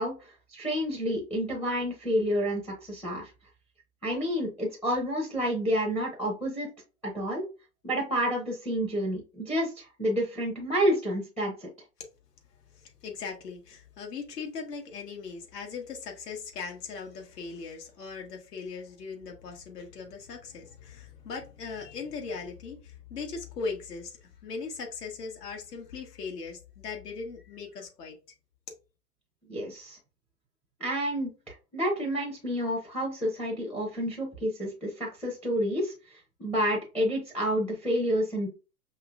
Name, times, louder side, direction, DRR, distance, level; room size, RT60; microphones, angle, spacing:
voice 1, 0.0-3.3 4.0-6.7 7.0-7.4 7.8-11.7 29.5-30.0 30.8-38.5, equal, 5° left, 0.7 m, -29 dB
voice 2, 12.8-28.2, left 5 dB, 70° left, 1.5 m, -39 dB
5.4 x 2.7 x 2.4 m
hypercardioid pair, 115°, 49 cm